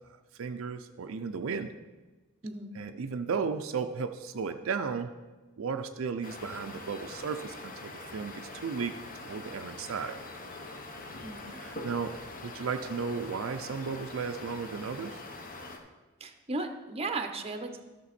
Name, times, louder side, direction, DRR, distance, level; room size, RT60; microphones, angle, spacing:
voice 1, 0.4-1.7 2.7-5.1 5.6-8.9 9.2-10.2 11.6-12.2 12.4-15.2, right 5 dB, 70° right, 7 dB, 0.5 m, -34 dB
voice 2, 2.4-2.7 11.2-11.6 16.2-17.8, right 3 dB, 30° right, 7 dB, 0.7 m, -36 dB
sound 1, 6.2-15.8, left 2 dB, 45° left, 0.9 m, -44 dB
12.0 x 6.0 x 4.2 m, 1.2 s
head